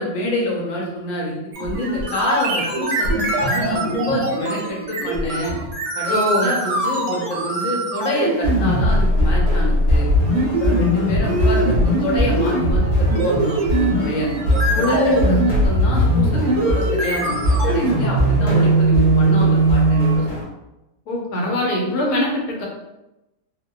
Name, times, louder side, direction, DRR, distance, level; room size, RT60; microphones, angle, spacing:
voice 1, 0.0-5.5 6.0-10.1 10.6-14.3 14.8-15.4 15.6-20.2, left 1 dB, 65° left, -3 dB, 0.9 m, -27 dB
sound 1, 1.5-20.2, right 1 dB, 75° right, 1.0 m, -20 dB
voice 2, 6.1-6.5 14.7-15.4 21.1-22.7, left 1 dB, 85° left, -2 dB, 1.2 m, -22 dB
sound 2, 8.4-20.4, left 1 dB, 45° left, 0.6 m, -23 dB
2.7 x 2.1 x 2.2 m, 0.95 s
omnidirectional pair, 1.7 m